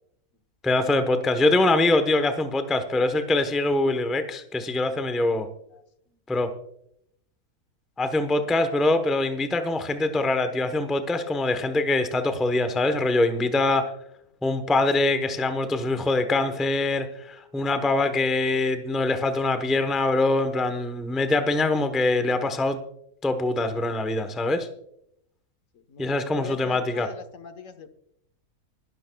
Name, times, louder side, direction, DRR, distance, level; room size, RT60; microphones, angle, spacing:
voice 1, 0.6-5.5 6.3-6.5 8.0-13.9 14.4-22.8 23.2-24.7 26.0-27.1, left 2 dB, ahead, 8 dB, 0.6 m, -23 dB
voice 2, 25.7-27.9, left 4 dB, 55° left, 7 dB, 1.4 m, -41 dB
25.0 x 12.5 x 2.3 m, 0.75 s
omnidirectional pair, 1.7 m